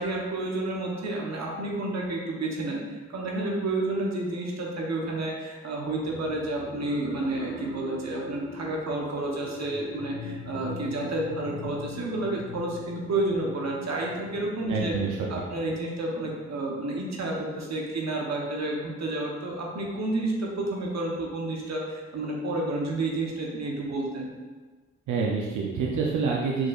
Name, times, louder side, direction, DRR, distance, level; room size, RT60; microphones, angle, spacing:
voice 1, 0.0-14.9 15.3-24.3, right 2 dB, 60° right, -2 dB, 1.0 m, -30 dB
sound 1, 6.0-19.4 20.0-20.1, left 2 dB, 85° left, 1.5 m, -43 dB
voice 2, 14.7-15.3 25.1-26.7, right 5 dB, 80° right, -2 dB, 0.6 m, -27 dB
4.7 x 4.4 x 2.4 m, 1.4 s
cardioid pair, 55°, 30 cm